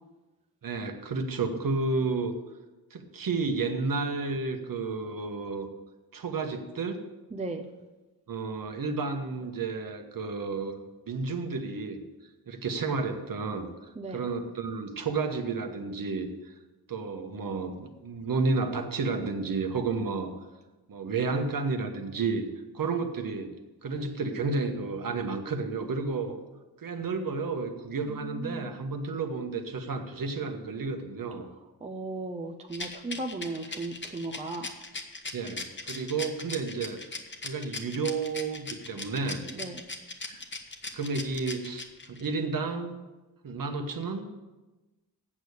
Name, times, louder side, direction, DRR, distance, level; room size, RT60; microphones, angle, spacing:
voice 1, 0.6-2.3 2.9-5.7 6.1-7.0 8.3-10.8 11.1-12.0 12.5-16.5 16.9-20.3 20.9-22.5 22.7-23.5 23.8-26.4 26.8-31.5 35.3-37.0 37.4-39.4 40.3-40.4 40.9-43.0 43.4-44.3, right 4 dB, 55° right, 6 dB, 1.1 m, -31 dB
voice 2, 7.3-7.7 14.0-14.2 28.1-28.8 31.8-34.7 39.5-39.8, right 2 dB, 15° right, 6 dB, 0.5 m, -36 dB
Rattle, 32.7-42.3, left 3 dB, 30° left, 1.0 m, -38 dB
8.5 x 6.5 x 8.2 m, 1.1 s
wide cardioid pair, 165°, 40 cm